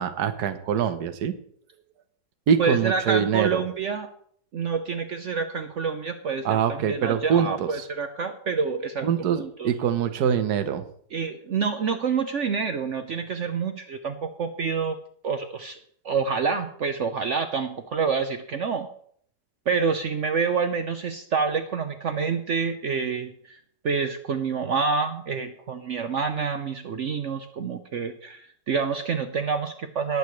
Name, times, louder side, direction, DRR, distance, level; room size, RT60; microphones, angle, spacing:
voice 1, 0.0-1.3 2.5-3.6 6.4-7.7 9.0-10.8, right 8 dB, 75° right, 10 dB, 1.5 m, -24 dB
voice 2, 2.6-4.1 4.5-9.1 9.4-9.7 11.1-15.0 15.2-15.8 16.0-18.9 19.7-30.2, right 5 dB, 55° right, 8 dB, 0.9 m, -27 dB
20.0 x 8.3 x 3.1 m, 0.62 s
omnidirectional pair, 1.7 m